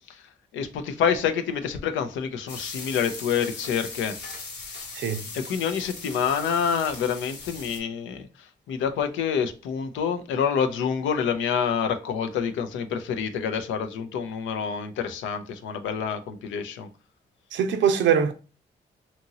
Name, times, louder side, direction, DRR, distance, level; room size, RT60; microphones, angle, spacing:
voice 1, 0.5-4.2 5.3-8.3 8.7-16.9, left 7 dB, 80° left, 0.5 m, -27 dB
sound 1, 2.5-7.8, left 3 dB, 65° left, 0.9 m, -39 dB
voice 2, 4.9-5.3 17.5-18.3, right 7 dB, 75° right, 0.5 m, -22 dB
2.8 x 2.6 x 2.7 m
supercardioid pair, 40°, 19 cm